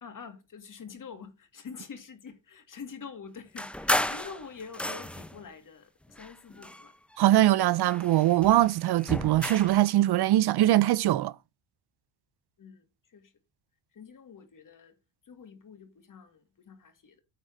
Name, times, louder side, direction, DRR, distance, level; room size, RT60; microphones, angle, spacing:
voice 1, 0.0-6.9 12.6-13.3 13.9-15.0 15.2-17.2, left 6 dB, 40° left, 2.2 m, -46 dB
sound 1, 3.6-5.4 6.1-7.3 7.6-9.8, left 1 dB, 5° left, 0.6 m, -33 dB
voice 2, 7.2-11.3, right 14 dB, 55° right, 0.5 m, -22 dB
9.2 x 4.1 x 6.2 m
cardioid pair, 115°, 47 cm